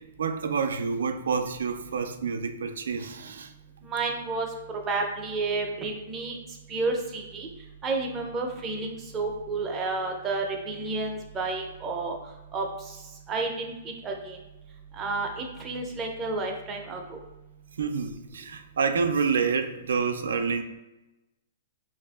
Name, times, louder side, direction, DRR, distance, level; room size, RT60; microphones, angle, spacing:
voice 1, 0.0-3.5 17.8-20.6, right 5 dB, 85° right, 8 dB, 0.3 m, -28 dB
voice 2, 3.8-4.5 4.9-6.4 6.7-7.5 7.8-12.2 12.5-12.6 13.3-13.7 14.0-14.4 15.0-17.2, right 3 dB, 15° right, 1 dB, 0.5 m, -30 dB
4.7 x 2.5 x 2.3 m, 0.99 s
hypercardioid pair, 160°, 0 cm